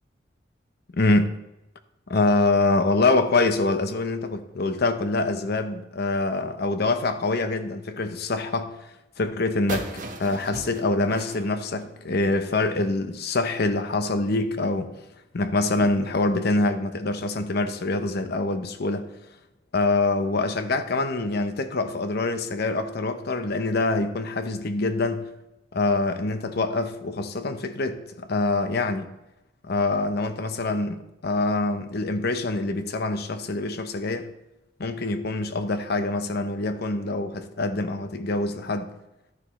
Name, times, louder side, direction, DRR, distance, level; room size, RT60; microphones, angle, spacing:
voice 1, 0.9-1.3 2.1-8.7 9.2-14.9 15.3-19.1 19.7-25.3 25.7-29.1 29.6-34.3 34.8-38.9, left 2 dB, 60° left, 0.8 m, -25 dB
sound 1, 9.7-12.4, right 2 dB, 45° right, 1.2 m, -37 dB
12.5 x 9.8 x 3.1 m
head